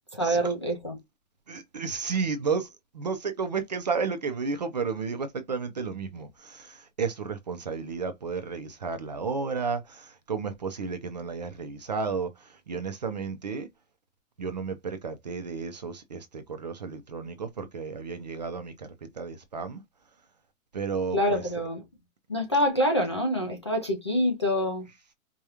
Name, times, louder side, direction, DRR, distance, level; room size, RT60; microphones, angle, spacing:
voice 1, 0.1-1.0 21.1-21.8 22.3-24.9, equal, 20° left, 0.4 m, -26 dB
voice 2, 1.5-13.7 14.4-19.8 20.7-21.4, right 5 dB, 30° right, 0.5 m, -32 dB
4.8 x 2.3 x 2.8 m
hypercardioid pair, 175°, 42 cm